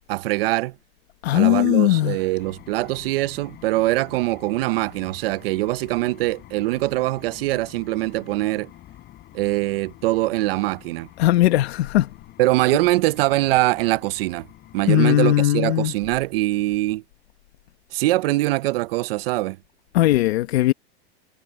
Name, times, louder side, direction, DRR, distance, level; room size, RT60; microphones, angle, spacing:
voice 1, 0.1-0.7 1.3-8.7 9.3-11.1 12.4-14.5 14.7-17.0 17.9-19.6, right 18 dB, 65° right, 0.8 m, -23 dB
voice 2, 1.2-2.2 11.2-12.1 14.9-15.9 19.9-20.7, left 15 dB, 80° left, 1.2 m, -18 dB
sound 1, 2.4-15.4, left 14 dB, 30° left, 6.8 m, -47 dB
supercardioid pair, 150°, 32 cm